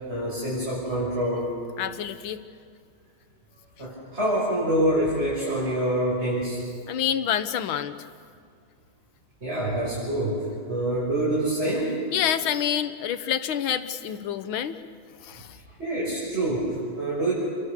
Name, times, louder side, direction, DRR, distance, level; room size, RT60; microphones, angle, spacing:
voice 1, 0.1-1.5 3.8-6.6 9.4-11.9 15.5-17.3, right 1 dB, 30° right, -8 dB, 6.7 m, -26 dB
voice 2, 1.8-2.4 6.9-7.9 12.1-14.8 15.2-15.6, left 9 dB, 80° left, 11 dB, 1.8 m, -27 dB
29.5 x 23.5 x 6.8 m, 2.3 s
omnidirectional pair, 2.2 m